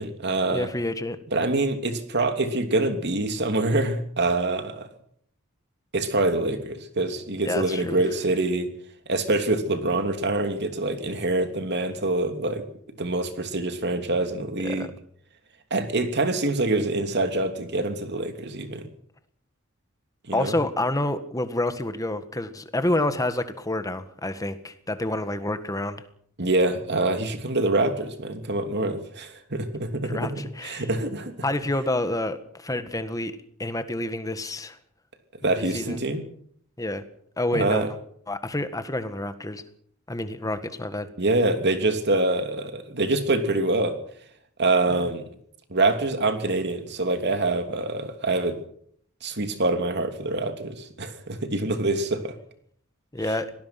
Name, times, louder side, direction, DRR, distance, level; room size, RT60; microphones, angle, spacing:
voice 1, 0.0-0.7 1.3-4.9 5.9-8.7 9.1-12.7 13.0-14.9 15.7-18.9 20.3-20.6 26.4-31.3 35.4-36.3 37.5-37.9 41.2-44.0 44.6-45.2 45.7-48.6 49.2-52.3, right 2 dB, 55° right, 7 dB, 2.9 m, -25 dB
voice 2, 0.5-1.2 7.5-8.0 14.6-14.9 20.3-26.0 30.1-30.9 31.4-33.3 33.6-34.8 35.7-36.0 36.8-37.0 37.4-37.8 38.3-39.6 40.1-41.1 44.9-45.0 53.1-53.5, left 1 dB, 15° left, 10 dB, 1.7 m, -28 dB
25.0 x 18.5 x 6.0 m, 0.64 s
head